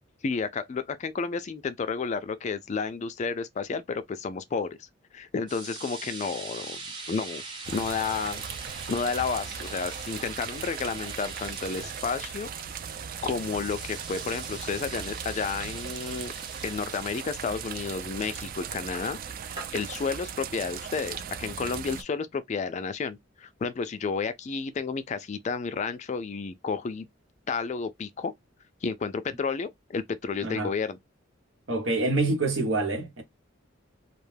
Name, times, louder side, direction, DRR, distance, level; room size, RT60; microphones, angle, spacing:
voice 1, 0.2-4.9 5.1-6.8 7.1-7.4 7.7-8.4 8.9-12.5 13.2-16.3 16.6-19.2 19.4-27.1 27.5-28.3 28.8-31.0, left 5 dB, 35° left, 0.3 m, -31 dB
sound 1, 5.5-22.0, right 3 dB, 25° right, 0.8 m, -43 dB
sound 2, 7.6-22.0, right 8 dB, 45° right, 0.3 m, -38 dB
voice 2, 31.7-33.2, right 2 dB, 75° right, 1.0 m, -26 dB
2.4 x 2.2 x 3.2 m
head